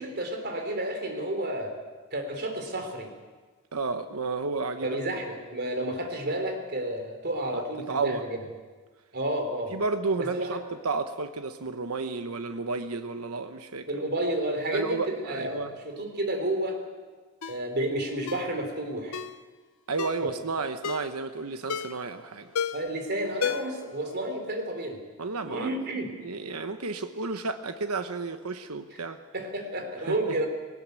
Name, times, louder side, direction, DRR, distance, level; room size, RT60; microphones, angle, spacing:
voice 1, 0.0-1.7 2.1-3.1 4.8-8.4 9.1-9.8 10.2-10.6 13.9-16.8 17.4-19.2 20.2-20.3 22.7-25.0 25.5-26.2 29.3-30.5, right 1 dB, 50° right, 4 dB, 3.9 m, -31 dB
voice 2, 3.7-5.0 7.5-8.2 9.7-13.9 14.7-15.7 19.9-22.5 25.2-25.8 26.2-29.2 30.1-30.4, right 3 dB, 85° right, 8 dB, 1.1 m, -32 dB
Ringtone, 17.4-17.6 18.3-18.5 19.1-19.4 20.0-20.3 20.8-21.1 21.7-22.1 22.5-22.9 23.4-23.9 24.2-24.3, left 7 dB, 80° left, 0.8 m, -32 dB
19.5 x 19.0 x 8.3 m, 1.4 s
head